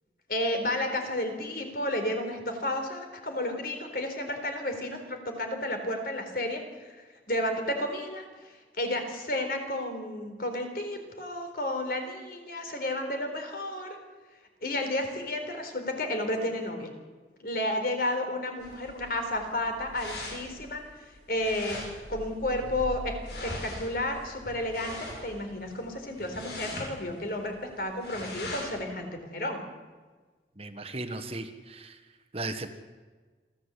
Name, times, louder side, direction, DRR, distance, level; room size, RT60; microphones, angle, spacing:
voice 1, 0.3-7.0 7.3-14.0 14.6-16.9 17.4-23.2 23.4-29.6, left 1 dB, 55° left, 5 dB, 4.0 m, -32 dB
sound 1, 18.6-28.8, left 1 dB, 75° left, 7.7 m, -41 dB
voice 2, 30.6-32.0 32.3-32.7, right 2 dB, 35° right, 8 dB, 1.4 m, -36 dB
26.5 x 15.0 x 8.3 m, 1.4 s
head